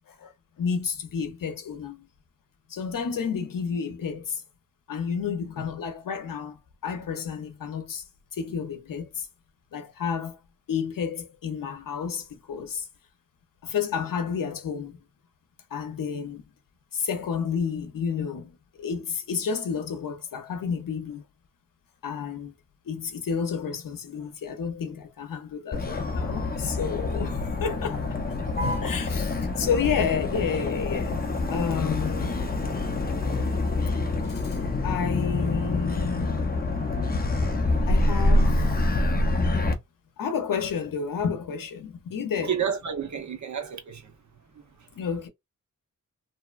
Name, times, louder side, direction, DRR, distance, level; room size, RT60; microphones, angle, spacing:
voice 1, 0.6-2.1 2.7-4.4 4.9-8.0 8.3-9.3 9.7-10.4 10.7-12.9 13.6-15.0 15.7-16.4 16.9-18.5 18.8-21.2 22.0-22.5 22.9-32.4 34.2-34.6 34.8-36.4 37.9-38.6 40.2-42.5 44.9-45.3, left 6 dB, 85° left, 0.7 m, -31 dB
Motor vehicle (road), 25.7-39.7, left 2 dB, 30° left, 0.6 m, -26 dB
voice 2, 42.4-44.2 44.5-45.0, right 8 dB, 60° right, 0.8 m, -31 dB
2.8 x 2.1 x 2.3 m
wide cardioid pair, 125°, 32 cm